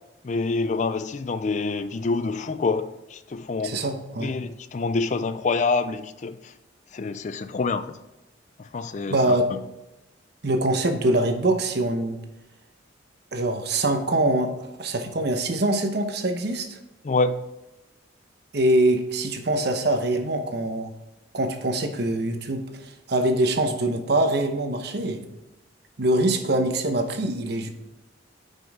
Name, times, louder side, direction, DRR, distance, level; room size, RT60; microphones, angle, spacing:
voice 1, 0.2-3.8 4.2-6.5 6.9-8.0 8.6-9.6 17.0-17.5, left 3 dB, 40° left, 0.4 m, -27 dB
voice 2, 3.6-4.3 9.1-9.5 10.4-12.2 13.3-16.8 18.5-20.9 21.3-25.2 26.0-27.7, right 1 dB, 60° right, 0.9 m, -24 dB
9.4 x 5.4 x 3.6 m
head